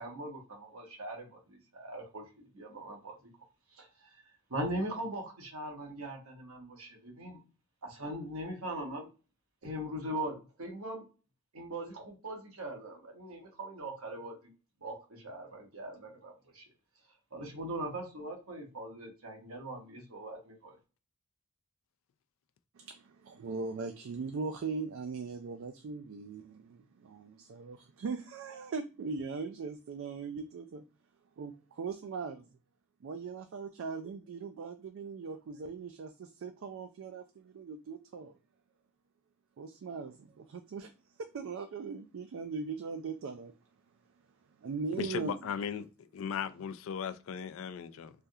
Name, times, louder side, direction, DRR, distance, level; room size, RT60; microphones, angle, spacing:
voice 1, 0.0-3.2 3.7-4.1 4.5-7.4 7.8-9.1 9.6-11.1 11.5-14.5 14.8-16.7 17.3-20.8, right 1 dB, 80° right, 1.1 m, -40 dB
voice 2, 22.8-30.8 31.4-32.5 33.0-38.3 39.6-40.9 41.2-43.5 44.6-45.4, right 4 dB, 65° right, 0.3 m, -40 dB
voice 3, 45.0-48.1, left 7 dB, 65° left, 0.3 m, -37 dB
3.3 x 2.4 x 2.6 m
head